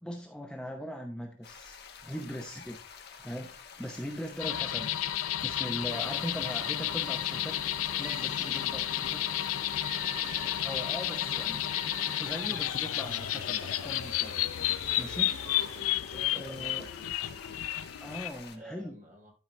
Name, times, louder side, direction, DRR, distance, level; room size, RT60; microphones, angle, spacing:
voice 1, 0.0-2.8 3.2-4.9 5.4-7.6 8.0-9.2 10.6-11.6 12.2-14.5 15.0-15.3 16.4-16.9 18.0-18.9, equal, 5° left, 2 dB, 0.8 m, -40 dB
sound 1, 1.4-18.6, left 6 dB, 50° left, 1.1 m, -49 dB
sound 2, 4.4-18.3, left 12 dB, 80° left, 0.5 m, -32 dB
sound 3, 5.9-15.8, right 3 dB, 70° right, 2.2 m, -48 dB
voice 2, 8.8-9.2 11.1-11.3 16.1-17.6 18.5-19.3, right 1 dB, 40° right, 0 dB, 2.9 m, -51 dB
13.0 x 4.6 x 3.3 m, 0.37 s
head